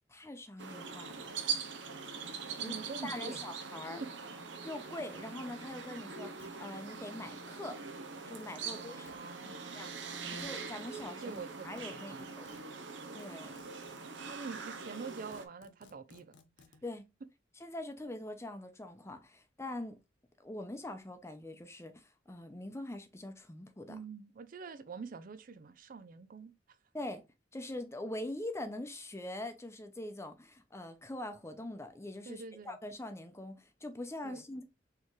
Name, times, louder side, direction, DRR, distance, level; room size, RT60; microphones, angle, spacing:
voice 1, 0.1-1.4 2.6-2.8 3.0-4.0 4.6-7.8 8.3-9.1 9.5-9.9 10.3-12.6 13.1-13.6 16.8-17.0 17.6-20.0 20.4-24.0 26.9-27.2 27.5-34.6, left 1 dB, 15° left, 0.7 m, -43 dB
sound 1, 0.6-15.5, right 5 dB, 70° right, 0.8 m, -42 dB
voice 2, 2.6-3.4 4.0-4.1 8.7-10.6 11.2-12.3 14.3-16.3 23.9-26.5 32.3-32.8 34.2-34.4, right 4 dB, 50° right, 0.4 m, -46 dB
sound 2, 5.1-5.2 5.6-5.7 6.4-6.5 9.1-9.3 10.4-10.5 11.0-12.7 13.2-14.1 14.8-14.9 15.1-16.8, left 3 dB, 70° left, 0.8 m, -61 dB
4.5 x 3.6 x 3.2 m
head